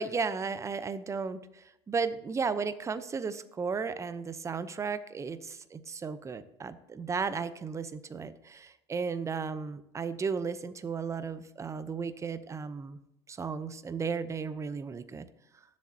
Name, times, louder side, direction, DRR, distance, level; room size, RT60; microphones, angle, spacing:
voice 1, 0.0-13.0 13.3-15.3, right 5 dB, 20° right, 13 dB, 0.8 m, -34 dB
18.5 x 7.5 x 2.9 m, 0.83 s
hypercardioid pair, 80°, 14 cm